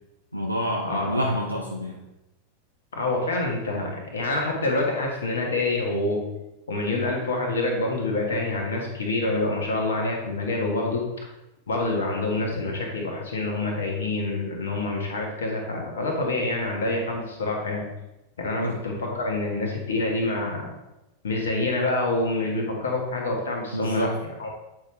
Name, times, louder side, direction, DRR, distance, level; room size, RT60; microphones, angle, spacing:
voice 1, 0.3-2.0 18.6-18.8 23.7-24.1, equal, 90° left, -1 dB, 0.6 m, -27 dB
voice 2, 2.9-6.2 6.7-11.1 11.7-17.8 18.4-20.7 21.2-24.5, left 2 dB, 65° left, 0 dB, 1.5 m, -27 dB
8.3 x 4.8 x 3.2 m, 0.95 s
figure-of-eight pair, 90°, 0 cm